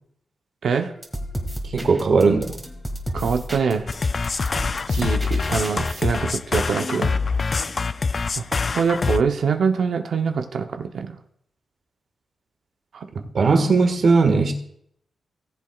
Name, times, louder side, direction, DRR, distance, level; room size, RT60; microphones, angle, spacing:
voice 1, 0.6-0.9 3.1-3.9 4.9-7.2 8.4-11.2 12.9-13.1, right 5 dB, 75° right, 5 dB, 0.8 m, -24 dB
sound 1, 1.0-6.0, equal, 5° right, 1.8 m, -33 dB
voice 2, 1.6-2.6 13.1-14.5, right 4 dB, 55° right, 5 dB, 1.7 m, -18 dB
sound 2, 3.9-9.2, left 4 dB, 40° left, 0.4 m, -25 dB
18.5 x 7.7 x 2.4 m, 0.68 s
cardioid pair, 100°, 0 cm